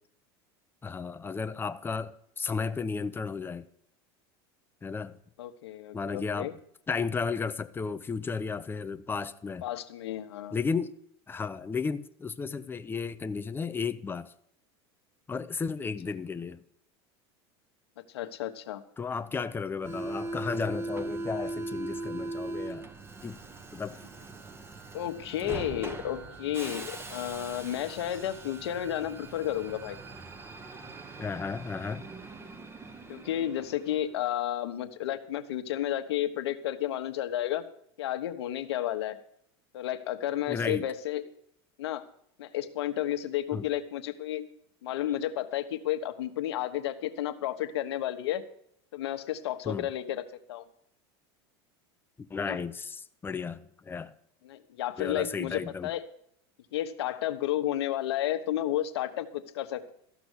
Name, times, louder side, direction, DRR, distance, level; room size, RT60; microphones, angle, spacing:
voice 1, 0.8-3.7 4.8-5.1 5.9-6.5 6.9-9.6 10.5-11.0 11.3-14.3 15.3-16.6 19.0-22.8 23.2-23.4 23.7-24.0 31.2-32.1 40.5-40.8 43.5-43.6 49.7-49.9 52.3-54.1 55.0-55.9, left 5 dB, 15° left, 0.7 m, -33 dB
voice 2, 5.4-6.5 9.6-10.6 18.1-18.8 24.9-30.0 33.1-37.6 38.0-39.2 39.7-41.2 41.8-42.1 42.4-44.5 44.8-48.4 48.9-50.2 50.5-50.6 52.4-52.6 54.4-56.0 56.7-59.9, left 12 dB, 85° left, 1.2 m, -32 dB
Subway metro underground, 19.8-34.2, right 2 dB, 20° right, 1.2 m, -40 dB
14.0 x 6.0 x 8.2 m
supercardioid pair, 115°, 13 cm